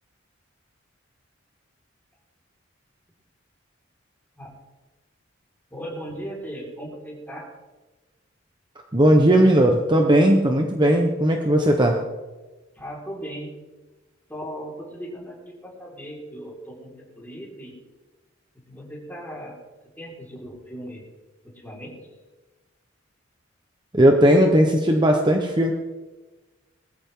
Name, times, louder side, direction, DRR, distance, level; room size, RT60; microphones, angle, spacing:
voice 1, 5.7-7.5 12.7-13.5 14.3-17.7 18.7-19.6 20.0-21.0 21.5-22.0, equal, 10° left, -4 dB, 5.3 m, -37 dB
voice 2, 8.9-12.0 23.9-25.7, right 1 dB, 25° right, 3 dB, 1.2 m, -17 dB
21.5 x 14.0 x 4.0 m, 1.2 s
head